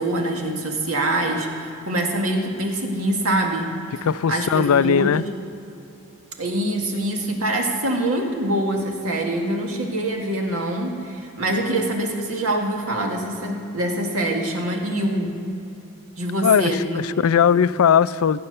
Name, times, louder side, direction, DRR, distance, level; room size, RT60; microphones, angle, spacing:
voice 1, 0.0-3.8 4.3-5.2 6.4-15.4 16.2-17.0 17.4-17.5, right 1 dB, 90° right, 2 dB, 1.9 m, -24 dB
voice 2, 4.0-5.2 16.4-18.4, left 7 dB, 80° left, 16 dB, 0.4 m, -19 dB
16.5 x 8.8 x 6.8 m, 2.9 s
head